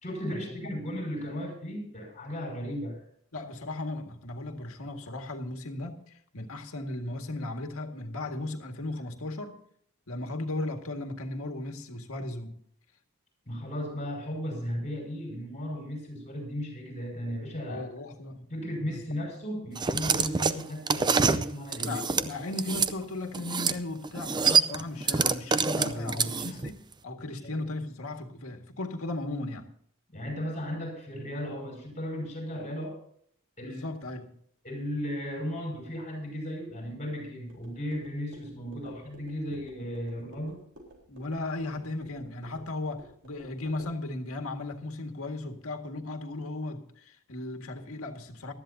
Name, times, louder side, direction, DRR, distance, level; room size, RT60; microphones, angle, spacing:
voice 1, 0.0-3.0 13.5-17.9 18.5-22.0 25.7-26.7 27.3-27.6 30.1-33.0 33.6-33.8 34.6-40.6, equal, 35° left, 2 dB, 5.6 m, -35 dB
voice 2, 3.3-9.6 10.1-12.5 17.7-18.5 18.8-19.0 21.2-21.4 21.8-26.8 27.0-29.7 33.6-34.3 38.8-38.9 39.5-39.9 41.1-48.5, left 2 dB, 70° left, 4 dB, 1.9 m, -36 dB
sound 1, 19.8-22.9 23.3-23.8 24.0-26.7, right 5 dB, 20° right, 0.5 m, -26 dB
sound 2, 37.5-44.0, equal, 55° right, 3.9 m, -53 dB
19.0 x 13.0 x 2.7 m, 0.63 s
head